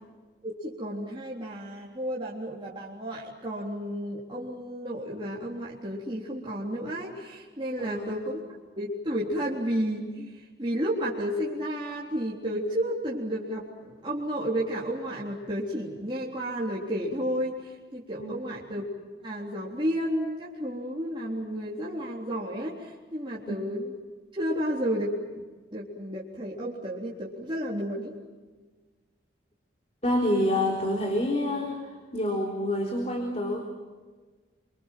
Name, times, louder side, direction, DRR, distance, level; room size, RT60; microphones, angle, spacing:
voice 1, 0.4-8.4 8.8-18.9 19.2-23.9 24.3-25.4 25.7-28.2, equal, 25° right, -5 dB, 3.7 m, -32 dB
voice 2, 7.8-8.1 18.2-18.4 23.5-23.6 30.0-33.6, left 1 dB, 35° left, 1 dB, 3.8 m, -27 dB
28.5 x 25.5 x 7.6 m, 1.4 s
head